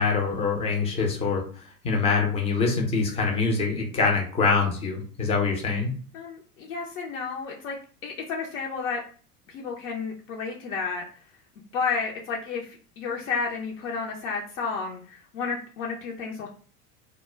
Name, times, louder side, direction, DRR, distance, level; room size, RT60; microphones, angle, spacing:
voice 1, 0.0-1.4 1.8-5.9, left 4 dB, 15° left, 1 dB, 0.4 m, -24 dB
voice 2, 6.1-7.8 8.0-9.0 9.5-11.0 11.7-16.5, left 5 dB, 55° left, -1 dB, 0.6 m, -31 dB
2.2 x 2.1 x 3.0 m, 0.42 s
figure-of-eight pair, 85°, 47 cm